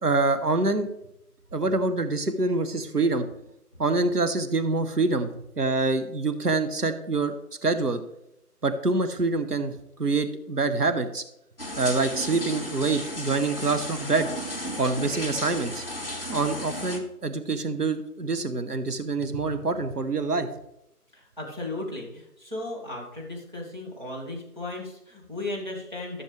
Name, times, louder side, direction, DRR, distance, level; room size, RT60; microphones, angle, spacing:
voice 1, 0.0-0.9 1.5-3.3 3.8-5.3 5.6-7.3 7.6-8.0 8.6-9.7 10.0-11.2 11.8-14.3 14.8-15.8 16.3-20.5, right 3 dB, 75° right, 9 dB, 1.3 m, -25 dB
sound 1, 11.6-17.0, equal, 35° left, 1.1 m, -34 dB
voice 2, 21.1-26.2, left 2 dB, 30° right, -3 dB, 1.7 m, -36 dB
14.0 x 6.4 x 3.3 m, 0.83 s
figure-of-eight pair, 180°, 47 cm